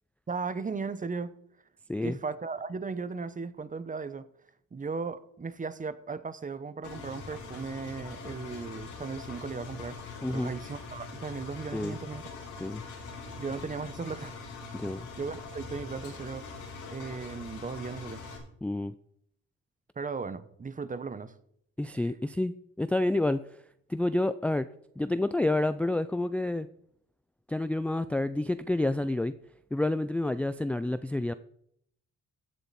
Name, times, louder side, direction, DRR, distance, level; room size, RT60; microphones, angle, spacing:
voice 1, 0.3-1.3 2.0-4.3 4.7-12.3 13.4-14.4 15.2-16.5 16.9-18.2 20.0-21.4, right 4 dB, 25° right, 0.9 m, -36 dB
Engine, 6.8-18.4, left 4 dB, 90° left, 4.1 m, -43 dB
voice 2, 18.6-18.9 21.8-23.4 23.9-24.7 25.0-26.7 27.5-29.3 29.7-31.3, left 2 dB, 5° left, 0.4 m, -29 dB
15.5 x 8.0 x 4.2 m
cardioid pair, 90°, 30 cm